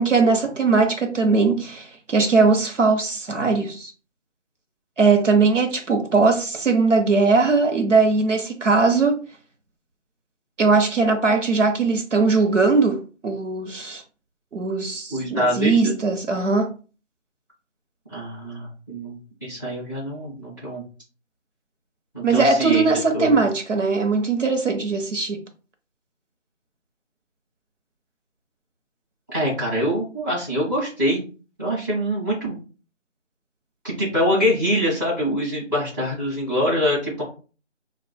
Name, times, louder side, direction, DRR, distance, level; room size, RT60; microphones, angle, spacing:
voice 1, 0.0-3.9 5.0-9.2 10.6-14.0 14.5-16.7 22.2-25.4, right 4 dB, 85° right, 0.9 m, -20 dB
voice 2, 15.1-15.9 18.1-20.8 22.1-22.8 23.1-23.4 29.3-31.2 31.6-32.6 33.8-37.2, equal, 15° right, 1.6 m, -24 dB
4.7 x 2.3 x 2.2 m
figure-of-eight pair, 170°, 36 cm